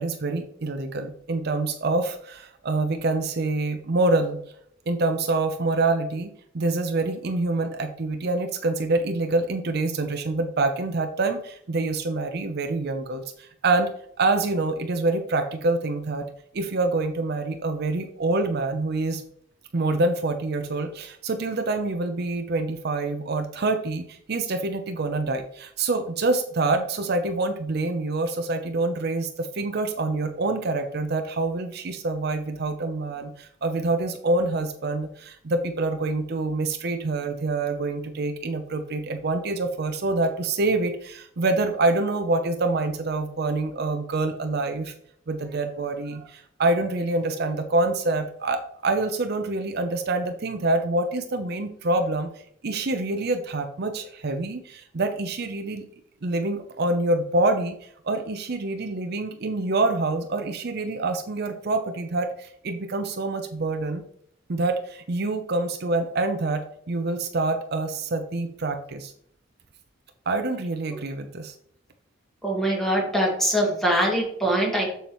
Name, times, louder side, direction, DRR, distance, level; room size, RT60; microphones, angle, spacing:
voice 1, 0.0-4.4 4.9-13.9 14.2-16.3 16.5-19.2 19.7-44.9 45.3-52.3 52.6-55.8 56.2-64.0 64.5-69.1 70.3-71.5, right 2 dB, 55° right, 7 dB, 0.6 m, -26 dB
voice 2, 72.4-74.9, right 1 dB, ahead, -2 dB, 2.1 m, -23 dB
7.2 x 7.1 x 3.0 m, 0.66 s
head